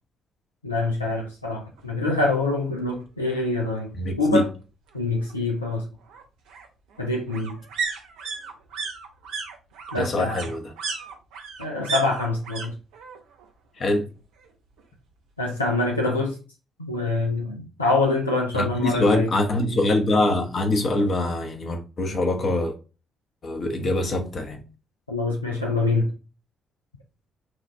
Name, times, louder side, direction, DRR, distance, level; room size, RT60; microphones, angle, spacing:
voice 1, 0.6-3.9 4.2-4.5 4.9-5.9 7.0-7.6 9.9-10.4 11.6-12.8 15.4-16.4 16.8-19.3 25.1-26.1, left 2 dB, 90° left, 0.5 m, -25 dB
sound 1, 1.8-1.9 2.2-2.3 2.6-3.6 4.9-12.7 12.9-13.5 13.8-14.8 15.1-15.2, right 5 dB, 70° right, 0.8 m, -35 dB
voice 2, 4.0-4.4 10.0-10.7 13.8-14.1 18.5-22.8 23.4-24.6, left 2 dB, 50° left, 1.1 m, -24 dB
6.1 x 2.6 x 3.1 m
figure-of-eight pair, 40°, 0 cm